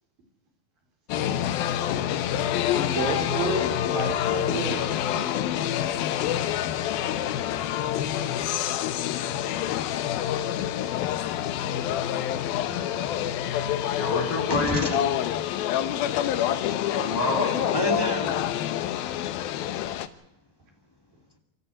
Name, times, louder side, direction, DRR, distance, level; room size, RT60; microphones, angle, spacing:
sound 1, 1.1-20.1, left 11 dB, 85° left, 2.8 m, -27 dB
voice 1, 2.7-5.7 13.5-13.6 19.0-19.1, right 3 dB, 70° right, 3 dB, 5.8 m, -32 dB
voice 2, 12.7-14.0 14.5-15.0 15.3-17.0 17.7-18.4, left 1 dB, 10° left, 4 dB, 1.9 m, -33 dB
voice 3, 13.9-15.0 16.9-17.8, left 3 dB, 40° left, -1 dB, 4.6 m, -28 dB
26.0 x 14.0 x 8.4 m, 0.84 s
omnidirectional pair, 4.2 m